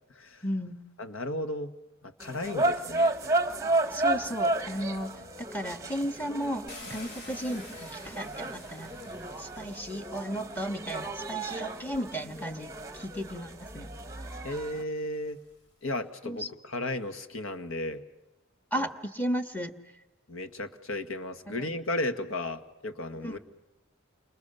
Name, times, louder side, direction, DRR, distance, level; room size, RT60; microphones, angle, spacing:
voice 1, 0.4-0.8 3.9-5.1 5.4-8.9 9.4-13.9 16.2-16.5 18.7-19.7 21.5-21.6 23.2-23.4, equal, 10° left, 7 dB, 1.6 m, -34 dB
voice 2, 1.0-1.7 2.0-3.1 14.4-15.4 15.8-18.0 18.8-18.9 20.3-23.4, left 1 dB, 75° left, 8 dB, 1.9 m, -34 dB
sound 1, 2.2-14.8, right 2 dB, 15° right, 1.2 m, -32 dB
Car, 6.7-10.8 11.7-11.8 12.4-15.6, left 2 dB, 55° left, 6.1 m, -50 dB
29.5 x 26.5 x 6.9 m, 0.97 s
head